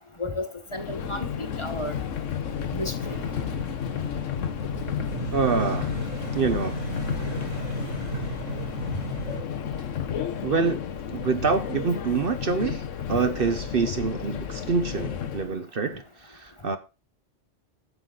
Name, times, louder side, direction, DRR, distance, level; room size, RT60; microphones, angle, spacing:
voice 1, 0.2-2.0 2.7-3.2 13.1-13.3, left 1 dB, 25° left, 1.3 m, -33 dB
Subway metro underground, 0.7-15.5, left 8 dB, 90° left, 1.3 m, -32 dB
sound 1, 3.0-9.4, right 3 dB, 85° right, 4.3 m, -35 dB
voice 2, 5.3-5.9 6.3-6.8 10.4-10.8 11.1-12.8 13.1-16.8, right 5 dB, 50° right, 0.9 m, -26 dB
12.0 x 7.5 x 3.8 m
omnidirectional pair, 1.3 m